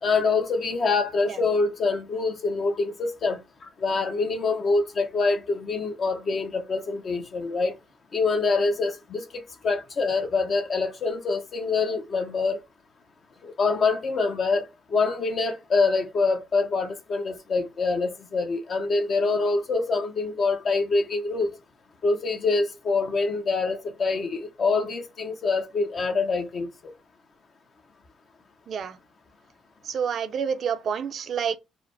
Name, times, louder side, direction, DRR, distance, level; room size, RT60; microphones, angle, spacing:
voice 1, 0.0-7.7 8.1-12.6 13.4-21.5 22.0-26.9, left 4 dB, 45° left, 0.9 m, -25 dB
voice 2, 28.7-29.0 29.8-31.6, right 7 dB, 55° right, 0.5 m, -28 dB
4.9 x 2.1 x 4.7 m
cardioid pair, 125°, 0 cm